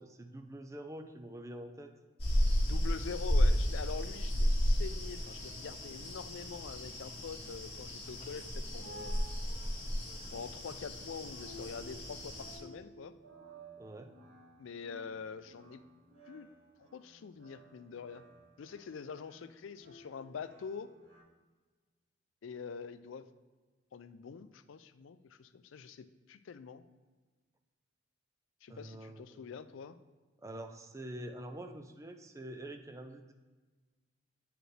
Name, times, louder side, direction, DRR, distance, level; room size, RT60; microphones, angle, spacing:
voice 1, 0.0-1.9 13.8-14.1 28.7-29.4 30.4-33.3, right 1 dB, 15° right, 6 dB, 0.4 m, -46 dB
sound 1, 2.2-12.6, equal, 30° left, 1.9 m, -33 dB
voice 2, 2.7-9.2 10.3-13.1 14.6-15.8 16.3-16.5 16.8-18.2 18.6-20.9 22.4-23.3 23.9-26.8 28.6-29.9, left 6 dB, 70° left, 12 dB, 0.4 m, -45 dB
sound 2, 8.6-21.2, right 2 dB, 70° right, 1.7 m, -55 dB
8.8 x 5.0 x 3.2 m, 1.3 s
head